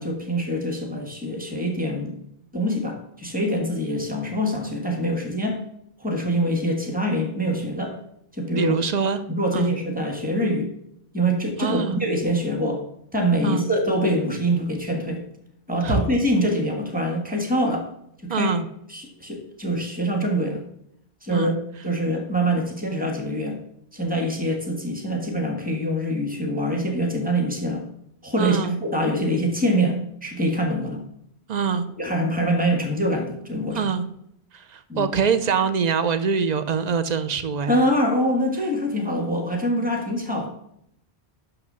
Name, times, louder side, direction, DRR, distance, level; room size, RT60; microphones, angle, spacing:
voice 1, 0.0-2.2 2.5-5.6 6.0-8.0 8.3-8.7 9.3-10.7 11.1-12.8 13.1-15.2 15.7-17.9 18.2-18.5 18.9-20.6 21.2-21.5 21.8-23.6 23.9-27.8 28.2-31.0 32.0-33.9 34.9-35.1 37.7-40.5, equal, 10° right, 3 dB, 1.4 m, -24 dB
voice 2, 8.6-9.2 9.5-9.7 11.6-12.0 13.4-13.7 15.8-16.0 18.3-18.7 21.3-21.5 28.4-28.8 31.5-31.9 33.7-34.1 34.5-37.7, right 6 dB, 45° right, 10 dB, 0.7 m, -24 dB
6.1 x 5.9 x 6.7 m, 0.75 s
omnidirectional pair, 1.1 m